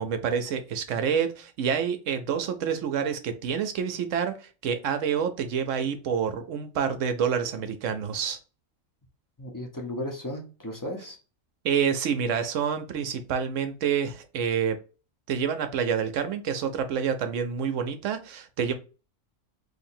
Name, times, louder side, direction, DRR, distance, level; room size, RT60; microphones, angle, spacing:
voice 1, 0.0-8.4 11.6-14.8 15.3-18.7, right 7 dB, 70° right, 8 dB, 0.9 m, -28 dB
voice 2, 9.4-11.2 18.6-18.7, left 1 dB, 20° left, 1 dB, 0.6 m, -35 dB
2.9 x 2.6 x 4.3 m, 0.33 s
omnidirectional pair, 1.4 m